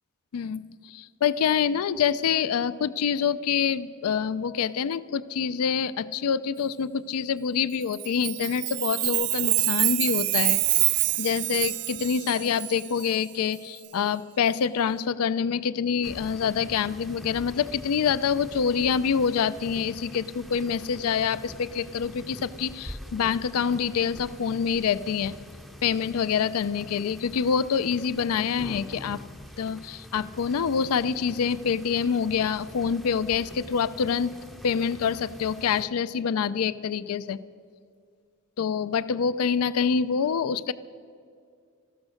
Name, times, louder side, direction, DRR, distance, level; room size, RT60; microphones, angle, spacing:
voice 1, 0.3-25.3 25.8-29.2 29.6-34.3 34.6-37.4 38.6-40.7, left 7 dB, 70° left, 16 dB, 0.4 m, -26 dB
Chime, 7.9-13.1, right 23 dB, 75° right, 0.3 m, -26 dB
sound 1, 16.0-35.9, equal, ahead, 0.5 m, -44 dB
14.0 x 12.5 x 6.4 m, 2.3 s
head